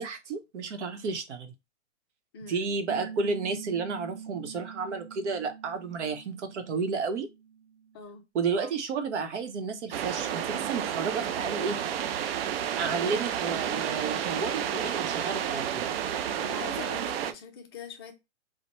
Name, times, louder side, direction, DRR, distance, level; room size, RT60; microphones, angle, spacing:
voice 1, 0.0-1.5 2.5-7.3 8.3-11.8 12.8-15.9, right 4 dB, 70° right, 0.9 m, -32 dB
voice 2, 2.3-2.7 7.9-8.2 16.4-18.1, left 6 dB, 20° left, 0.4 m, -43 dB
Piano, 2.9-8.0, right 8 dB, 30° right, 0.9 m, -45 dB
wind forest through trees around mic in waves cool movement, 9.9-17.3, right 9 dB, 55° right, 0.4 m, -31 dB
4.1 x 2.1 x 3.0 m
hypercardioid pair, 155°, 36 cm